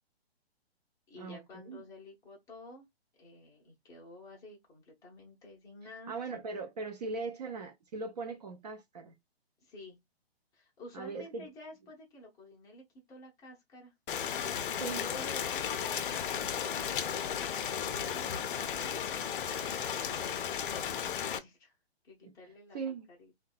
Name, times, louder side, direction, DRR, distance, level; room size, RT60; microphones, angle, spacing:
voice 1, 1.1-2.9 3.2-6.4 9.6-10.0 10.5-13.9 15.0-20.6 20.9-21.8 22.0-23.3, left 1 dB, 10° left, 0.6 m, -51 dB
voice 2, 6.1-9.1 10.9-11.5 14.8-15.0 22.2-22.3 22.7-23.1, right 4 dB, 40° right, 0.4 m, -39 dB
Rain, 14.1-21.4, left 8 dB, 55° left, 0.4 m, -34 dB
2.6 x 2.1 x 2.2 m
figure-of-eight pair, 135°, 31 cm